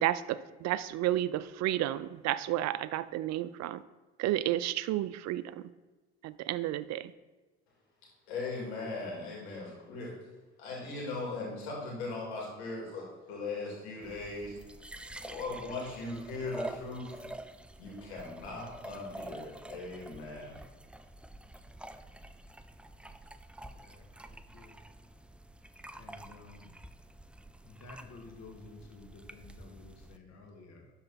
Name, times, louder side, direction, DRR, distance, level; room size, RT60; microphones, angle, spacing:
voice 1, 0.0-3.8 4.2-5.4 6.2-7.1, right 13 dB, 55° right, 16 dB, 0.5 m, -31 dB
voice 2, 8.3-10.1 10.6-14.6 15.2-17.2 17.8-20.6, left 3 dB, 85° left, -2 dB, 2.7 m, -39 dB
sound 1, 14.0-30.2, right 1 dB, 5° right, 0.4 m, -48 dB
voice 3, 23.7-24.8 25.9-26.7 27.6-30.9, left 3 dB, 55° left, 2 dB, 2.0 m, -52 dB
12.0 x 4.0 x 4.2 m, 1.2 s
hypercardioid pair, 60°, 32 cm